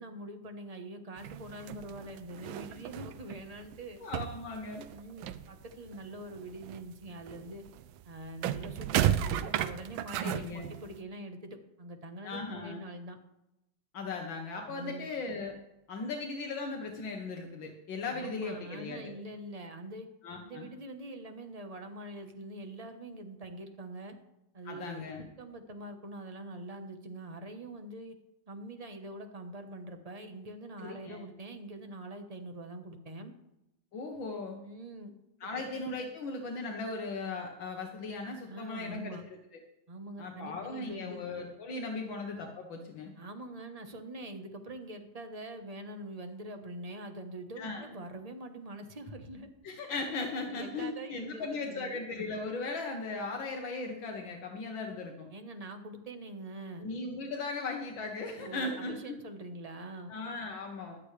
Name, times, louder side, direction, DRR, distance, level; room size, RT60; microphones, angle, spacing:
voice 1, 0.0-4.0 4.9-7.6 8.0-13.2 14.7-15.1 18.1-20.1 20.4-24.2 24.5-28.1 28.5-33.3 34.6-35.1 35.4-35.9 38.5-39.2 39.9-41.2 41.9-42.1 43.2-49.5 50.4-52.0 55.3-56.9 58.4-60.2, right 1 dB, 25° right, 6 dB, 0.9 m, -44 dB
sound 1, 1.2-3.8 4.0-6.0 6.3-11.0, right 11 dB, 85° right, 1.4 m, -34 dB
voice 2, 4.0-4.9 10.2-10.7 12.2-12.8 13.9-15.6 15.9-19.1 20.2-20.7 24.7-25.3 30.8-31.2 33.9-34.6 35.4-39.2 39.5-39.6 40.2-43.1 47.6-47.9 49.6-55.3 56.8-59.2 60.1-61.0, left 3 dB, 75° left, 2 dB, 1.9 m, -38 dB
16.0 x 11.5 x 3.3 m, 0.89 s
omnidirectional pair, 2.1 m